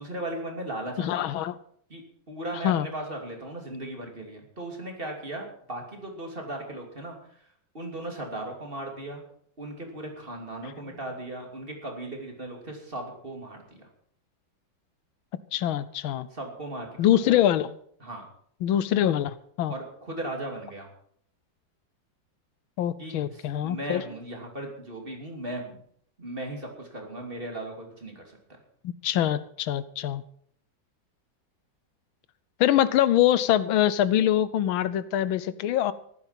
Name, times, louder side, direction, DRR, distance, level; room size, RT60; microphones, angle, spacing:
voice 1, 0.0-1.3 1.9-7.2 7.7-9.2 9.6-13.9 16.3-17.2 18.0-18.3 19.7-20.9 23.0-25.8 26.2-28.4, right 1 dB, 25° right, 1 dB, 3.0 m, -37 dB
voice 2, 1.0-1.6 2.6-2.9 15.5-16.3 17.0-17.7 18.6-19.7 22.8-24.0 28.8-30.2 32.6-35.9, left 11 dB, 85° left, 16 dB, 1.5 m, -24 dB
14.5 x 12.0 x 5.8 m, 0.63 s
omnidirectional pair, 2.2 m